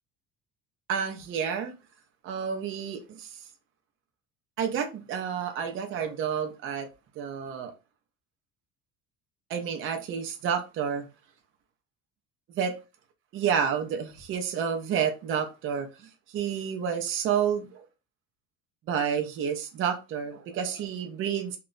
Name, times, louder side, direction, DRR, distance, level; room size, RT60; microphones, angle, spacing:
voice 1, 0.9-1.7 2.2-3.3 4.6-6.9 7.2-7.7 9.5-11.0 12.6-12.8 13.3-15.9 16.3-17.8 18.9-21.6, right 7 dB, 45° right, 0.5 m, -29 dB
2.2 x 2.0 x 3.6 m
cardioid pair, 150°, 30 cm